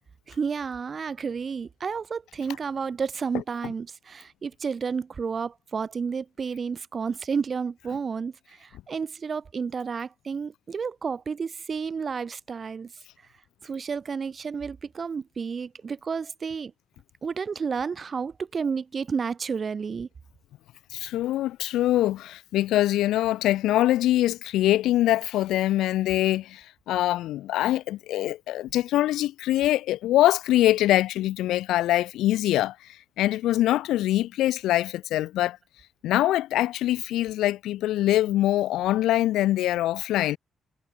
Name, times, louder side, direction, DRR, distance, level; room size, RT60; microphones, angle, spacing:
voice 1, 0.3-12.9 13.6-16.7 17.2-20.1, right 5 dB, 40° right, 0.9 m, -31 dB
voice 2, 20.9-32.8 33.2-35.6 36.0-40.4, left 14 dB, 85° left, 0.8 m, -23 dB
cardioid pair, 90°, 0 cm